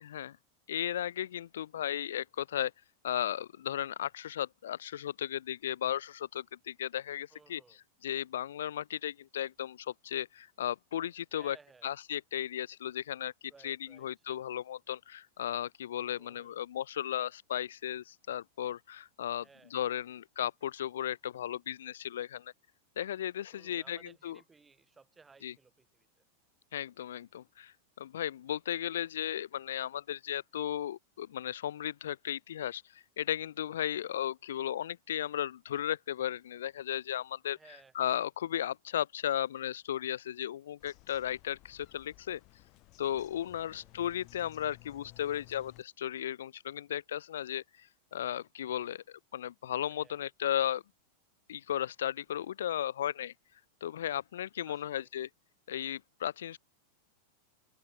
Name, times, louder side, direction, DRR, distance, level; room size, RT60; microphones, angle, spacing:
voice 1, 0.7-2.7 3.0-7.6 8.0-11.6 11.8-13.3 13.6-13.8 14.0-19.5 19.7-22.5 23.0-24.0 24.2-24.4 25.4-25.5 26.7-37.6 37.9-42.4 43.0-50.8 51.5-53.3 53.8-55.3 55.7-56.6, left 11 dB, 60° left, 0.5 m, -35 dB
voice 2, 7.3-7.8 11.3-11.9 13.5-14.1 16.2-16.7 19.4-19.9 23.5-26.2 37.5-37.9 43.3-44.0 49.9-50.3 54.7-55.1, right 4 dB, 15° right, 5.4 m, -60 dB
Bird vocalization bird call bird song, 40.8-45.8, left 23 dB, 40° left, 5.2 m, -57 dB
figure-of-eight pair, 90°, 0 cm